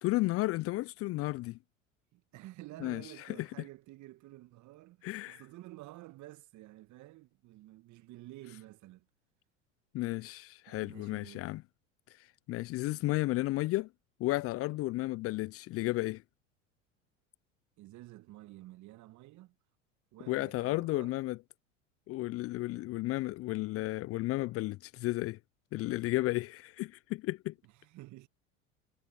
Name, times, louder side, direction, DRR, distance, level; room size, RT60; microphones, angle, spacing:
voice 1, 0.0-1.6 2.8-3.0 3.4-3.5 5.0-5.4 9.9-11.6 12.5-13.9 14.2-16.2 20.3-21.4 22.1-25.4 25.7-27.5, left 19 dB, 40° left, 0.5 m, -33 dB
voice 2, 2.1-9.1 10.7-11.5 17.8-19.5 20.1-21.2 27.6-28.3, right 17 dB, 50° right, 1.9 m, -51 dB
hypercardioid pair, 80°, 38 cm